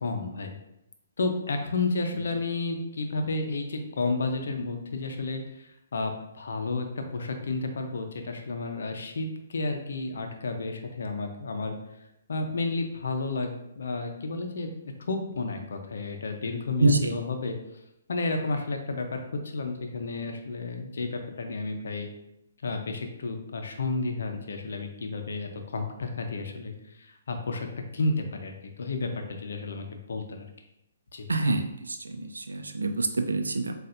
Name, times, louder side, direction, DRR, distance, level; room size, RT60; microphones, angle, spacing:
voice 1, 0.0-0.6 1.2-11.8 12.3-14.7 15.0-17.6 18.1-22.1 22.6-27.7 27.9-30.5 31.1-31.3, left 3 dB, 65° left, 4 dB, 0.7 m, -31 dB
voice 2, 16.8-17.2 31.3-33.7, right 2 dB, 80° right, 6 dB, 0.6 m, -26 dB
7.5 x 2.6 x 2.6 m, 0.86 s
figure-of-eight pair, 130°, 0 cm